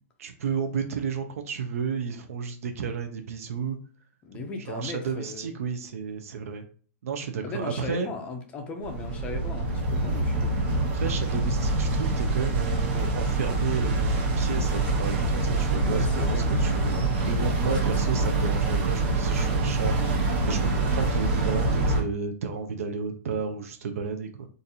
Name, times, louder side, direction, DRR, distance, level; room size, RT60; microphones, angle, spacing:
voice 1, 0.2-3.8 4.7-6.6 7.0-8.1 10.9-17.0 17.3-20.0 20.4-24.5, right 6 dB, 65° right, 6 dB, 0.5 m, -32 dB
voice 2, 4.2-5.5 7.4-10.6 15.8-16.5 17.6-17.8, left 3 dB, 15° left, 5 dB, 0.4 m, -37 dB
sound 1, 8.8-22.0, right 2 dB, 40° right, 0.8 m, -25 dB
4.0 x 2.5 x 2.7 m, 0.42 s
hypercardioid pair, 165°, 8 cm